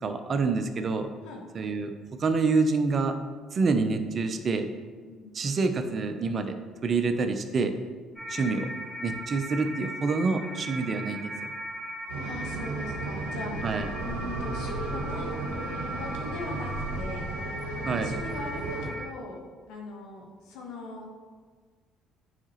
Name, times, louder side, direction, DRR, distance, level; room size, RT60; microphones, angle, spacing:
voice 1, 0.0-1.1 1.5-1.9 2.2-3.1 3.5-4.7 5.3-7.7 8.3-8.7 9.0-11.3 13.6-13.9 17.8-18.1, right 4 dB, 45° right, 8 dB, 0.7 m, -27 dB
voice 2, 5.0-5.4 12.1-16.7 16.9-19.4 19.7-21.1, left 2 dB, 70° left, 0 dB, 1.4 m, -41 dB
sound 1, 8.2-19.1, equal, 10° right, 1.6 m, -38 dB
sound 2, 12.1-18.9, right 3 dB, 85° right, 0.9 m, -35 dB
9.7 x 5.0 x 3.1 m, 1.5 s
hypercardioid pair, 55°, 0 cm